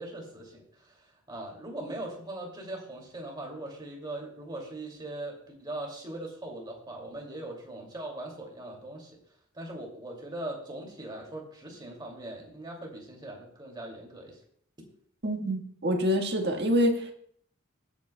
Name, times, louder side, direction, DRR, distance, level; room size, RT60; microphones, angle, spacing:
voice 1, 0.0-9.2 9.5-14.4, right 1 dB, 20° right, 0 dB, 2.5 m, -40 dB
voice 2, 15.2-17.1, equal, 50° right, 3 dB, 1.6 m, -26 dB
22.0 x 8.5 x 2.3 m, 0.64 s
head